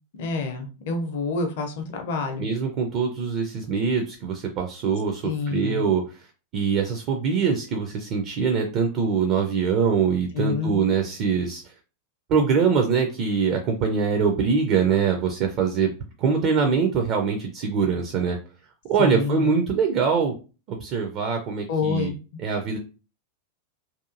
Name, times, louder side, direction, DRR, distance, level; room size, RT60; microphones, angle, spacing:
voice 1, 0.1-2.5 5.2-5.8 10.3-10.8 19.0-19.5 21.7-22.1, left 4 dB, 50° left, 5 dB, 0.6 m, -28 dB
voice 2, 2.4-6.2 6.5-11.6 12.3-15.9 16.2-18.4 18.9-20.3 20.7-22.1 22.4-22.8, right 6 dB, 40° right, 4 dB, 0.4 m, -23 dB
2.8 x 2.4 x 2.5 m, 0.34 s
figure-of-eight pair, 90°, 0 cm